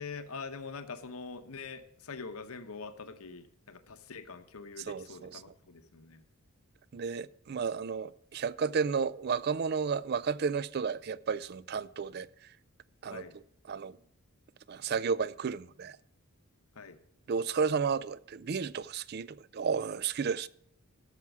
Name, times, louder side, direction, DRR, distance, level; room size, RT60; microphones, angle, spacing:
voice 1, 0.0-6.2 13.1-13.3 16.8-17.0, left 4 dB, 75° left, 0.9 m, -44 dB
voice 2, 4.9-5.4 6.9-12.3 13.0-13.2 13.7-14.0 14.7-16.0 17.3-20.5, right 5 dB, 45° right, 0.4 m, -32 dB
13.0 x 6.0 x 6.0 m
head